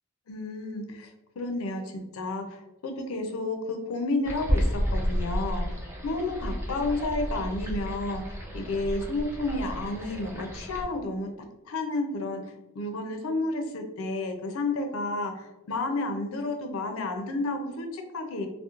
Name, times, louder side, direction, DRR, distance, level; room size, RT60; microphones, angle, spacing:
voice 1, 0.3-1.1 1.4-5.6 6.0-11.3 11.7-12.4 12.7-18.5, left 2 dB, 70° left, 5 dB, 0.5 m, -31 dB
sound 1, 4.2-10.8, equal, 10° right, 0.4 m, -31 dB
2.9 x 2.1 x 2.3 m, 1.0 s
head